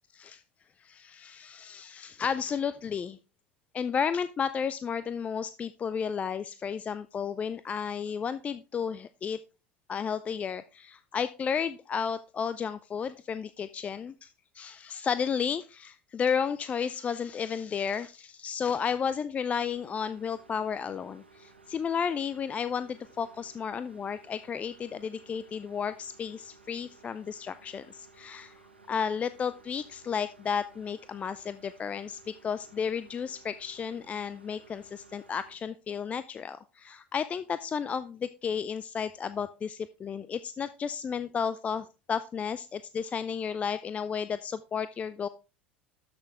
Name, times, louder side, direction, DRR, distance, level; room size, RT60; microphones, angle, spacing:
voice 1, 0.8-3.2 3.7-9.4 9.9-28.6 28.9-45.3, left 7 dB, 25° left, 15 dB, 0.4 m, -33 dB
sound 1, 19.5-35.5, right 4 dB, 85° right, 1.4 m, -57 dB
12.5 x 6.1 x 3.4 m, 0.32 s
figure-of-eight pair, 75°, 6 cm